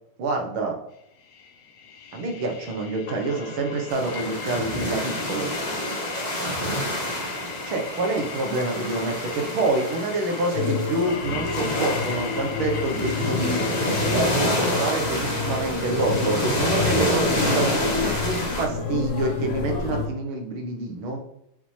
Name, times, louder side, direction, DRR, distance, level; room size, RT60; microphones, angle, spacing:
voice 1, 0.2-0.8 2.1-5.5 7.7-13.6 14.1-21.2, right 2 dB, 80° right, 2 dB, 2.0 m, -27 dB
sound 1, 1.2-14.3, left 5 dB, 60° left, 1.0 m, -38 dB
sound 2, 3.9-18.7, left 1 dB, 25° left, 1.0 m, -28 dB
sound 3, 10.5-20.1, left 4 dB, 85° left, 2.0 m, -29 dB
7.6 x 6.2 x 3.2 m, 0.81 s
omnidirectional pair, 2.2 m